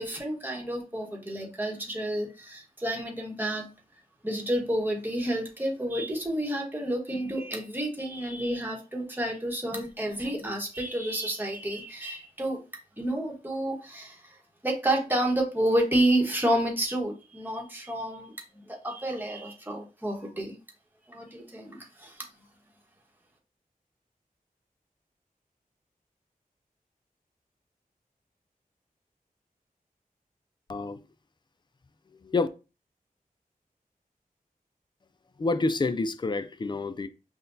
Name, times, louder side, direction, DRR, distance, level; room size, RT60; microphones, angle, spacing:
voice 1, 0.0-3.6 4.2-12.6 13.0-14.4 14.6-20.5 21.1-22.2, right 1 dB, 15° right, 1.1 m, -30 dB
voice 2, 32.1-32.5 35.4-37.1, left 3 dB, 30° left, 0.4 m, -28 dB
5.7 x 2.2 x 2.6 m
wide cardioid pair, 75°, 15 cm